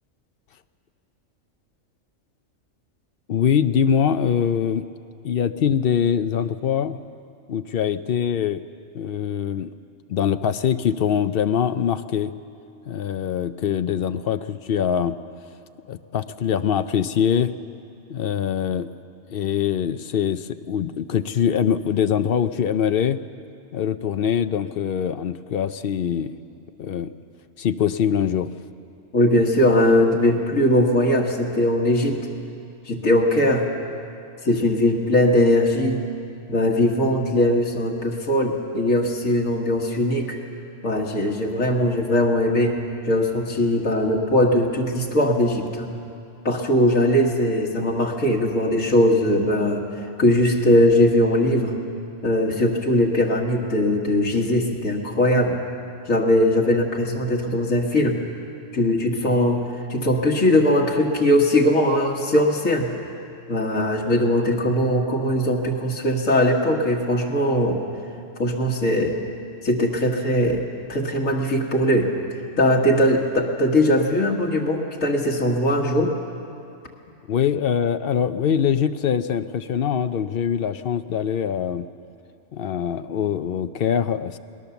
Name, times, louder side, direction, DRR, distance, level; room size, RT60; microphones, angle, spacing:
voice 1, 3.3-4.9 5.2-7.0 7.5-8.7 8.9-9.7 10.1-12.3 12.9-15.2 15.9-17.5 18.1-18.9 19.3-23.2 23.7-26.4 26.8-27.2 27.6-28.5 77.3-81.9 82.5-84.4, left 8 dB, 60° left, 11 dB, 0.7 m, -23 dB
voice 2, 29.1-32.2 32.9-33.7 34.4-36.0 36.5-40.4 40.8-42.8 43.0-45.9 46.5-49.9 50.2-51.7 52.2-55.6 56.1-58.2 58.7-59.6 59.9-62.9 63.5-67.8 68.4-69.2 69.6-70.6 70.9-72.1 72.6-76.1, left 1 dB, 85° left, -1 dB, 2.0 m, -20 dB
20.5 x 19.0 x 7.0 m, 2.7 s
omnidirectional pair, 1.3 m